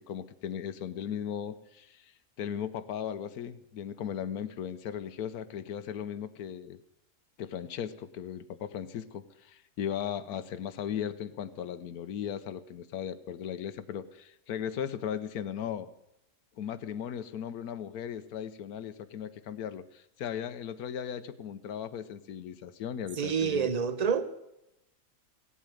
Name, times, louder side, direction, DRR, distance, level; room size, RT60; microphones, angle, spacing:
voice 1, 0.0-2.1 2.4-6.8 7.4-15.9 16.6-23.7, left 9 dB, 75° left, 1.2 m, -37 dB
voice 2, 23.2-24.2, right 6 dB, 35° right, 0.7 m, -27 dB
16.5 x 8.4 x 9.0 m
omnidirectional pair, 1.6 m